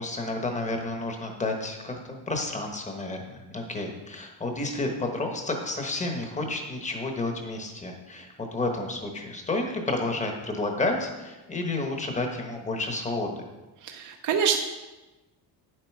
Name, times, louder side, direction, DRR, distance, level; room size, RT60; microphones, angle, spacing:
voice 1, 0.0-13.4, left 2 dB, 15° left, 3 dB, 1.2 m, -31 dB
voice 2, 13.8-14.6, right 7 dB, 45° right, 3 dB, 0.8 m, -25 dB
9.7 x 7.7 x 4.8 m, 1.1 s
cardioid pair, 165°, 45 cm